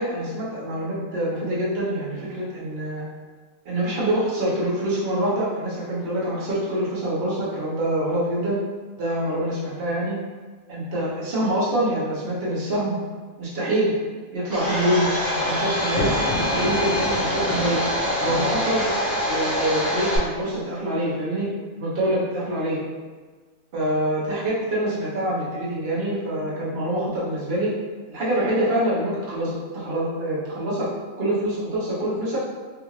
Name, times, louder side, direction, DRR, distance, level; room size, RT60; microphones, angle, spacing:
voice 1, 0.0-3.1 3.6-8.6 9.0-10.2 10.7-13.0 13.4-13.9 14.3-17.8 18.2-18.8 19.3-21.5 21.7-22.8 23.7-27.7 28.1-30.9 31.2-32.4, right 1 dB, 45° right, -7 dB, 1.1 m, -25 dB
Domestic sounds home sounds, 14.5-20.2, equal, 15° right, 0.6 m, -25 dB
Thunder, 15.8-19.9, left 2 dB, 70° left, 1.2 m, -32 dB
3.6 x 2.4 x 3.1 m, 1.4 s
omnidirectional pair, 1.5 m